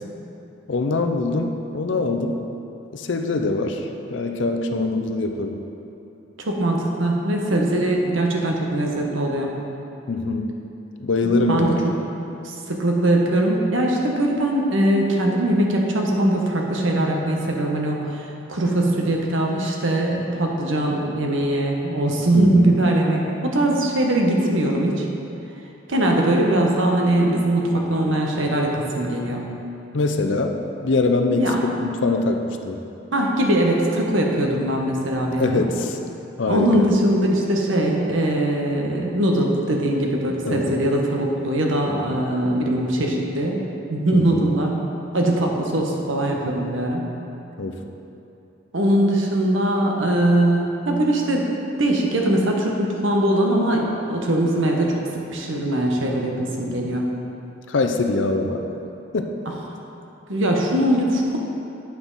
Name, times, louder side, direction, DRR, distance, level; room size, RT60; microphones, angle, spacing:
voice 1, 0.7-2.4 2.9-5.6 10.1-10.5 11.0-11.8 22.3-22.8 29.9-30.5 30.8-32.8 35.4-36.0 36.4-36.9 40.5-40.8 44.1-44.5 47.6-47.8 57.7-58.6 59.1-59.3, left 3 dB, 70° left, 5 dB, 0.6 m, -23 dB
voice 2, 6.4-9.5 11.2-11.8 12.7-25.0 25.9-29.4 31.4-31.6 33.1-35.7 36.5-43.6 43.9-44.8 45.1-47.1 48.7-51.5 51.8-55.0 55.3-57.1 60.3-61.4, right 1 dB, 85° right, 0 dB, 1.0 m, -21 dB
8.7 x 6.0 x 3.9 m, 2.9 s
head